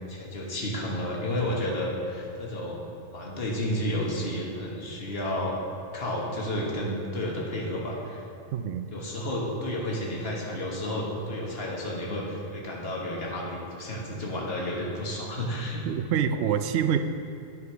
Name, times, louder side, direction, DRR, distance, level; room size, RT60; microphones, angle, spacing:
voice 1, 0.1-2.8 3.1-5.6 5.9-8.2 8.9-15.8, left 1 dB, 55° left, -3 dB, 1.7 m, -31 dB
voice 2, 8.5-8.9 15.8-17.0, right 8 dB, 70° right, 9 dB, 0.8 m, -26 dB
9.7 x 4.9 x 5.9 m, 2.7 s
omnidirectional pair, 1.2 m